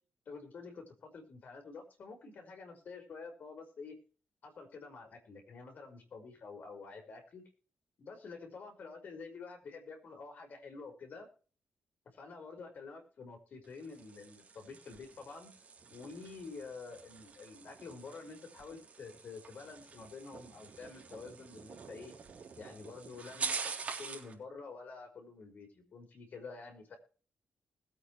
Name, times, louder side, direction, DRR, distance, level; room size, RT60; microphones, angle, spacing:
voice 1, 0.3-4.0 4.4-7.4 8.0-11.3 12.1-15.5 15.9-22.1 22.6-23.7 24.0-27.0, left 4 dB, 55° left, 4 dB, 5.3 m, -48 dB
sound 1, 13.6-24.3, right 5 dB, 40° right, 3.6 m, -45 dB
21.0 x 8.7 x 3.3 m, 0.39 s
wide cardioid pair, 140°, 3 cm